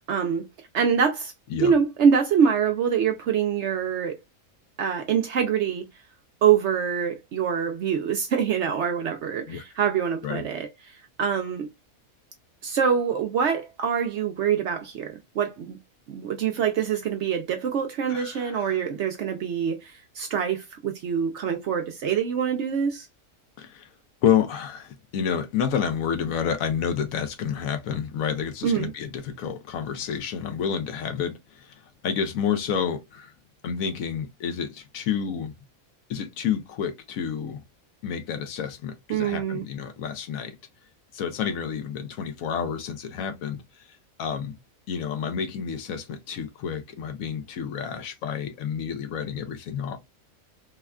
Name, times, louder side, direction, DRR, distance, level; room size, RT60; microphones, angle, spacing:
voice 1, 0.1-0.5 0.7-1.3 1.6-4.2 4.8-5.9 6.4-10.7 11.2-11.7 12.6-15.8 16.1-23.1 28.6-28.9 39.1-39.6, right 7 dB, 65° right, 0.7 m, -25 dB
voice 2, 18.1-18.8 23.6-23.9 24.2-33.3 33.6-35.5 36.1-37.6 38.0-40.5 41.1-44.6 44.9-50.0, left 7 dB, 75° left, 1.0 m, -29 dB
3.4 x 2.2 x 2.3 m
omnidirectional pair, 1.5 m